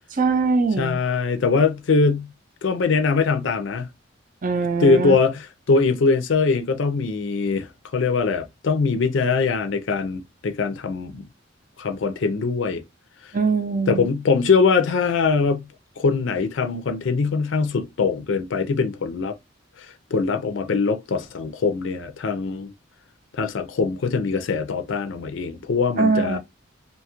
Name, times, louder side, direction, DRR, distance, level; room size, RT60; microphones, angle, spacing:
voice 1, 0.2-1.0 4.4-5.1 13.3-14.1 26.0-26.4, right 4 dB, 45° right, 0.5 m, -21 dB
voice 2, 0.8-2.3 2.6-3.9 4.8-11.2 11.8-12.8 13.2-13.3 13.9-15.7 16.0-19.4 19.8-22.7 23.3-26.4, left 4 dB, 70° left, 0.5 m, -22 dB
2.8 x 2.3 x 2.8 m
head